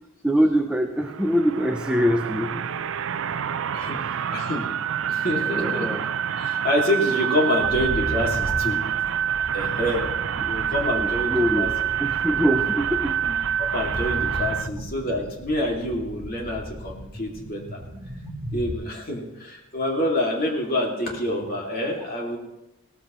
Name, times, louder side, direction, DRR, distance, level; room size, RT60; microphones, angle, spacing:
voice 1, 0.2-2.6 5.4-6.0 10.4-10.5 10.9-13.3, equal, 5° right, 4 dB, 0.5 m, -24 dB
sound 1, 1.0-14.7, right 9 dB, 65° right, 0.4 m, -27 dB
voice 2, 4.3-4.7 5.1-5.9 6.2-8.8 9.5-10.1 10.4-11.7 13.2-13.3 13.7-17.8 18.5-22.4, left 1 dB, 45° left, -1 dB, 2.4 m, -27 dB
sound 2, 7.6-18.7, equal, 40° right, 3.8 m, -36 dB
17.0 x 13.5 x 3.1 m, 0.95 s
head